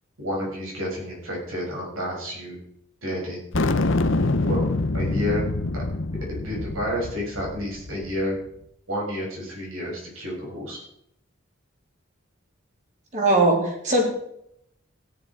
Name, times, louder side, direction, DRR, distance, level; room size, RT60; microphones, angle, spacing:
voice 1, 0.2-2.6 3.0-3.5 4.4-4.7 4.9-5.4 6.3-8.4 8.9-10.8, equal, 85° right, -3 dB, 7.1 m, -30 dB
sound 1, 3.5-8.2, left 2 dB, 70° left, 0.9 m, -25 dB
voice 2, 13.1-14.0, right 2 dB, 35° right, 0 dB, 3.6 m, -20 dB
16.5 x 10.5 x 4.8 m, 0.75 s
head